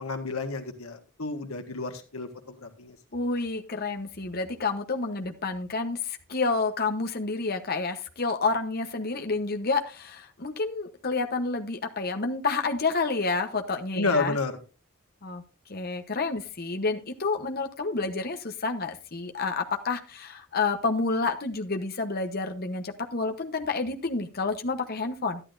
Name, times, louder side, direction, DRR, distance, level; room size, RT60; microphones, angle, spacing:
voice 1, 0.0-3.0 13.9-14.6, left 3 dB, 85° left, 6 dB, 1.6 m, -30 dB
voice 2, 3.1-14.4 15.2-15.4 15.7-25.4, left 3 dB, 45° left, 5 dB, 1.0 m, -29 dB
12.0 x 11.0 x 2.6 m, 0.33 s
head